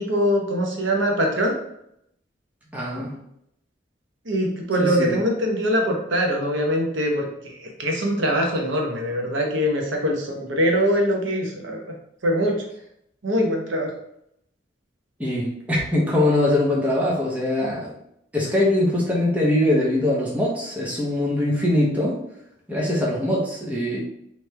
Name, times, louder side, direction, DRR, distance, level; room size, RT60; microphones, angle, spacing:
voice 1, 0.0-1.5 4.2-11.9 12.2-12.6 13.2-13.9, equal, 90° right, 1 dB, 0.9 m, -23 dB
voice 2, 2.7-3.1 4.8-5.2 15.2-17.9 18.3-22.2 22.7-24.0, left 1 dB, 10° right, -5 dB, 0.9 m, -22 dB
3.3 x 3.1 x 3.3 m, 0.75 s
head